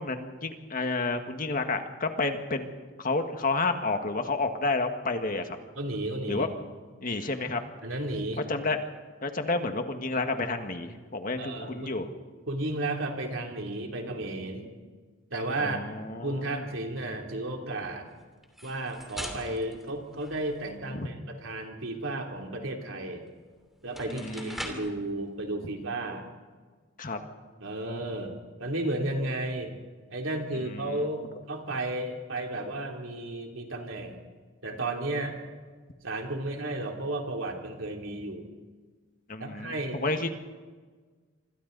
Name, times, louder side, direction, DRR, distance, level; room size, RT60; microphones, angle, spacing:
voice 1, 0.0-5.6 6.2-6.5 7.0-7.6 8.5-8.8 9.2-12.1 15.6-16.7 20.9-21.1 24.1-24.9 27.0-27.2 30.5-31.1 39.3-40.3, left 3 dB, 45° left, 6 dB, 1.7 m, -31 dB
voice 2, 5.8-6.5 7.8-8.4 11.4-11.9 12.5-14.7 15.3-15.8 16.2-18.1 18.6-23.3 23.8-26.2 27.6-29.7 30.1-34.2 34.6-35.3 36.0-38.4 39.4-40.1, right 2 dB, 75° right, 2 dB, 3.2 m, -33 dB
sound 1, 18.4-20.8 23.3-23.4 23.8-25.0, equal, ahead, 2.8 m, -41 dB
26.0 x 26.0 x 4.0 m, 1.4 s
head